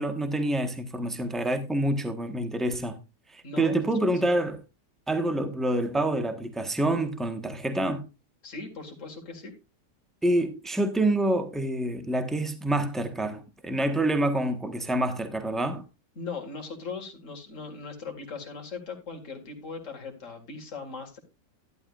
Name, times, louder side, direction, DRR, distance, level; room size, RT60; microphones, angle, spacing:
voice 1, 0.0-3.0 3.3-4.6 5.1-8.0 10.2-15.8, right 1 dB, ahead, 0.9 m, -27 dB
voice 2, 3.4-3.8 4.1-4.3 8.4-9.5 16.2-21.2, left 4 dB, 50° left, 2.3 m, -39 dB
12.0 x 10.5 x 2.4 m
omnidirectional pair, 1.8 m